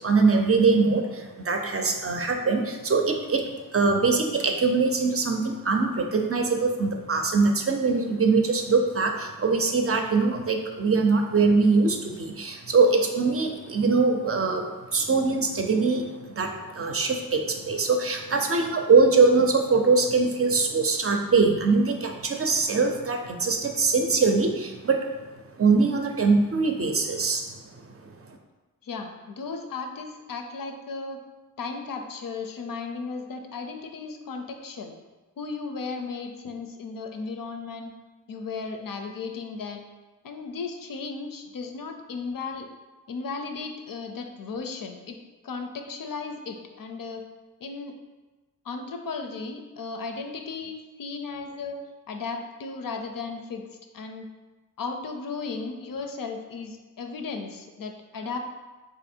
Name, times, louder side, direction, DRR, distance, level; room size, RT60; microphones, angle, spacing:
voice 1, 0.0-25.2 25.6-28.4, right 4 dB, 40° right, 4 dB, 0.5 m, -23 dB
voice 2, 28.8-31.2 31.6-35.0 35.4-37.9 38.3-39.9 40.2-42.7 43.1-45.2 45.4-47.2 47.6-47.9 48.6-51.8 52.1-53.7 53.9-54.3 54.8-58.4, left 4 dB, 75° left, 5 dB, 0.5 m, -35 dB
3.5 x 2.6 x 4.3 m, 1.2 s
wide cardioid pair, 80°, 34 cm